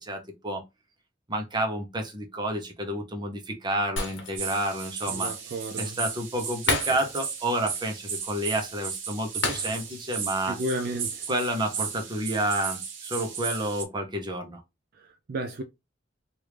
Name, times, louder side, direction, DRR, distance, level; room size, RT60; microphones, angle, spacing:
voice 1, 0.0-0.6 1.3-5.3 5.8-10.6 11.3-14.6, right 1 dB, 25° right, 0.9 m, -30 dB
Shatter, 4.0-4.7 5.0-5.1 6.7-7.4 7.7-7.9 9.4-10.1 10.5-10.6, left 3 dB, 70° left, 1.1 m, -31 dB
sound 1, 4.4-13.8, right 7 dB, 70° right, 0.9 m, -35 dB
voice 2, 5.1-6.0 10.5-11.3 15.0-15.6, right 1 dB, 50° right, 0.4 m, -33 dB
3.2 x 2.7 x 3.3 m
head